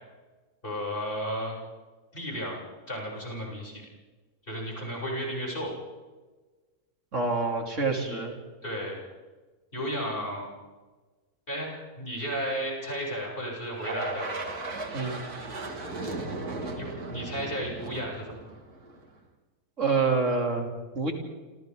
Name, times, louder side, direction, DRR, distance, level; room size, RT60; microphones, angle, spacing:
voice 1, 0.6-1.6 2.1-2.6 2.9-3.8 4.5-5.8 8.0-8.2 8.6-9.1 9.7-10.5 11.5-14.4 15.0-15.4 16.6-18.4, equal, 35° left, -3 dB, 8.4 m, -34 dB
voice 2, 7.1-8.3 14.9-15.4 19.8-21.1, right 4 dB, 55° right, 1 dB, 3.8 m, -27 dB
sound 1, 13.8-19.1, right 2 dB, 80° right, 3.0 m, -36 dB
28.0 x 27.5 x 4.0 m, 1.3 s
omnidirectional pair, 1.6 m